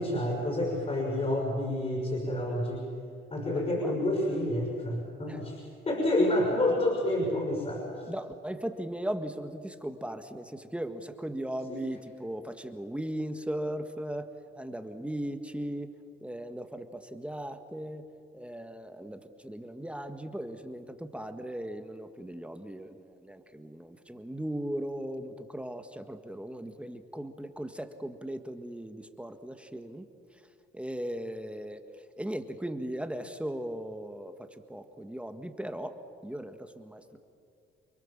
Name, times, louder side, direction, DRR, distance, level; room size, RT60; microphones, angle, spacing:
voice 1, 0.0-2.9 3.3-5.6 5.8-8.1 11.7-11.8, left 1 dB, 35° left, 0 dB, 6.1 m, -29 dB
voice 2, 3.5-4.0 5.3-5.4 8.1-14.3 14.6-15.9 16.2-18.0 18.3-30.1 30.7-31.8 32.2-37.2, right 1 dB, 5° right, 7 dB, 1.7 m, -38 dB
29.5 x 22.0 x 7.5 m, 2.4 s
cardioid pair, 90°, 20 cm